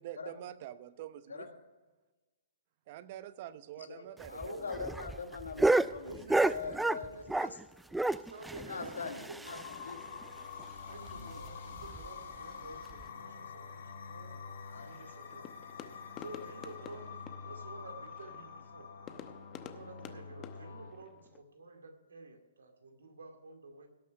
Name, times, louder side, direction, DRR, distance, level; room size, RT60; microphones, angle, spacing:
voice 1, 0.0-1.5 2.9-4.4 4.7-4.8, right 12 dB, 45° right, 15 dB, 0.8 m, -46 dB
voice 2, 3.8-6.2 6.4-7.6 7.9-8.2 8.5-10.1 11.1-11.4 14.6-14.9 16.3-16.5, left 4 dB, 85° left, 6 dB, 1.7 m, -43 dB
sound 1, 4.2-7.6 7.9-9.9 10.2-10.3 10.6-10.7 11.1-11.2 11.8-12.1 12.9-13.0, right 2 dB, 5° right, 0.3 m, -31 dB
voice 3, 6.0-6.5 6.9-7.3 8.3-9.7 10.9-14.3 14.8-15.5 16.2-18.9 19.6-23.9, right 3 dB, 80° right, 5 dB, 2.2 m, -50 dB
sound 2, 9.4-20.9, left 5 dB, 65° left, 2.3 m, -47 dB
sound 3, 14.8-21.4, left 10 dB, 30° left, 0.8 m, -51 dB
17.5 x 6.3 x 5.7 m, 1.2 s
hypercardioid pair, 130°, 0 cm